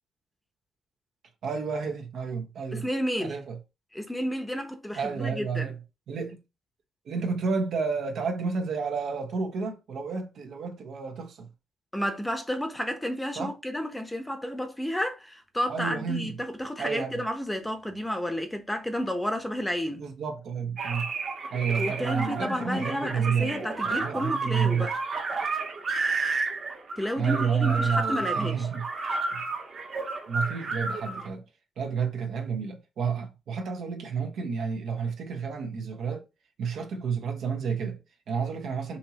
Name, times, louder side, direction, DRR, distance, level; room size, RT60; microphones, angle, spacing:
voice 1, 1.4-2.8 3.2-3.6 5.0-5.8 6.1-6.4 7.0-11.5 13.4-13.5 15.7-16.4 16.8-17.1 20.0-21.1 21.5-24.9 27.2-28.8 29.3-29.5 30.3-31.4 31.8-36.2 36.6-39.0, right 6 dB, 70° right, 1.2 m, -30 dB
voice 2, 2.7-3.4 3.9-5.7 11.9-20.1 21.8-25.0 27.0-28.7, equal, 10° left, 1.0 m, -31 dB
sound 1, 20.8-31.3, right 3 dB, 50° right, 1.5 m, -31 dB
5.5 x 2.9 x 2.9 m
cardioid pair, 90°, 0 cm